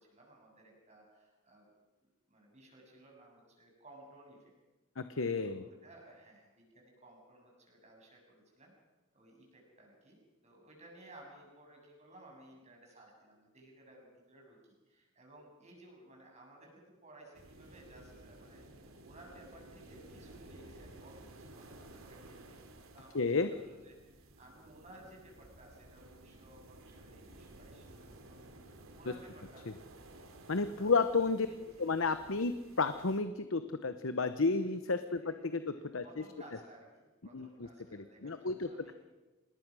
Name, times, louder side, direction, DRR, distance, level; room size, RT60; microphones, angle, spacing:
voice 1, 0.0-1.7 2.0-4.5 5.4-8.7 9.1-14.6 14.9-23.2 23.5-30.1 30.8-31.6 31.8-31.9 35.1-38.9, right 1 dB, 35° right, 0 dB, 7.5 m, -58 dB
voice 2, 5.0-5.6 23.1-23.5 30.5-31.5 31.8-36.0 37.3-37.5 37.9-38.9, left 4 dB, 70° left, 10 dB, 0.9 m, -32 dB
sound 1, 17.3-33.2, right 2 dB, 90° right, 3.0 m, -55 dB
26.5 x 20.0 x 6.3 m, 1.1 s
head